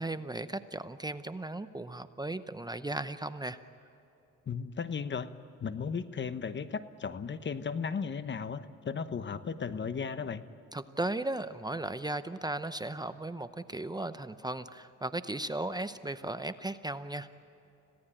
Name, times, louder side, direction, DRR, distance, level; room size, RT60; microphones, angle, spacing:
voice 1, 0.0-3.6 10.7-17.4, right 2 dB, 15° right, 11 dB, 0.7 m, -36 dB
voice 2, 4.5-5.3 5.6-10.4, left 6 dB, 40° left, 12 dB, 1.0 m, -35 dB
26.0 x 17.0 x 8.9 m, 2.9 s
cardioid pair, 90°, 30 cm